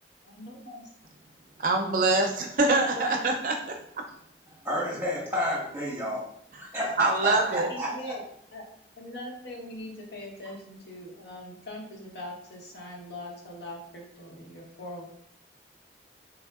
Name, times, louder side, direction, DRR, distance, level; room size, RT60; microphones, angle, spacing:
voice 1, 0.2-0.8 3.0-3.2 7.7-8.2 8.5-8.6 8.9-15.1, left 1 dB, 70° left, -2 dB, 0.9 m, -41 dB
voice 2, 1.6-3.8 7.0-7.7, right 3 dB, 50° right, 3 dB, 0.4 m, -24 dB
voice 3, 4.6-6.2 6.6-8.1, equal, 15° right, -5 dB, 1.3 m, -30 dB
3.5 x 3.3 x 2.3 m, 0.69 s
head